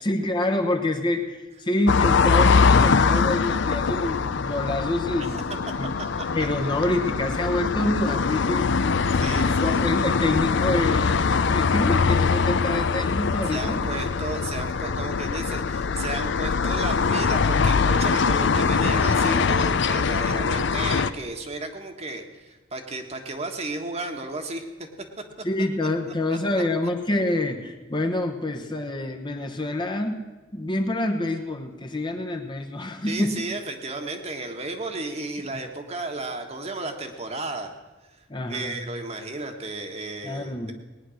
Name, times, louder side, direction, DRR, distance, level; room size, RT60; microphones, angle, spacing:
voice 1, 0.0-5.4 5.7-5.9 6.3-8.9 9.4-13.8 25.4-30.2 30.5-33.3 38.3-38.7 40.2-40.7, left 1 dB, 25° left, 4 dB, 1.0 m, -27 dB
sound 1, 1.9-21.1, left 5 dB, 65° left, 0.5 m, -22 dB
voice 2, 9.1-9.9 13.4-24.7 26.6-26.7 33.0-37.7 38.5-40.7, right 2 dB, 30° right, 4 dB, 1.4 m, -33 dB
19.0 x 9.9 x 6.4 m, 1.2 s
head